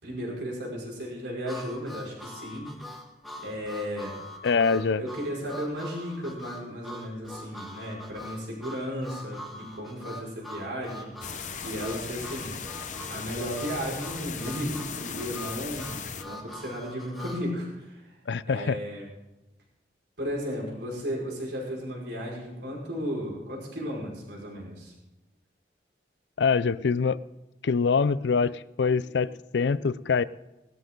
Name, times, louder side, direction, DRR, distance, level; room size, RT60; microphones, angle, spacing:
voice 1, 0.0-2.7 3.4-4.2 4.7-11.1 11.6-12.5 13.1-18.1 18.5-19.1 20.2-24.9, equal, 80° right, -3 dB, 5.2 m, -34 dB
Harmonica, 1.5-17.4, left 1 dB, ahead, 1.4 m, -43 dB
voice 2, 4.4-5.0 18.3-18.8 26.4-27.2 27.6-30.2, left 5 dB, 80° left, 18 dB, 0.5 m, -24 dB
sound 1, 11.2-16.2, left 6 dB, 45° left, 0.9 m, -37 dB
20.0 x 13.0 x 3.8 m, 0.97 s
head